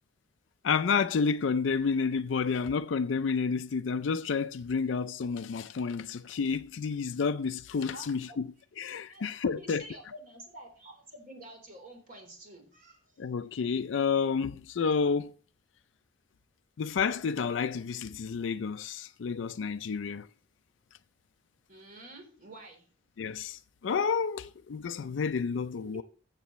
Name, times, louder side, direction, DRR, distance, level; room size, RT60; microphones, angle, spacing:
voice 1, 0.6-8.5 8.8-9.8 13.2-15.3 16.8-20.3 23.2-26.0, left 5 dB, 85° left, 0.4 m, -30 dB
voice 2, 7.9-8.4 9.1-9.2 9.6-13.3 21.7-22.9 25.8-26.0, right 1 dB, 45° right, 3.5 m, -49 dB
14.0 x 7.5 x 3.1 m
head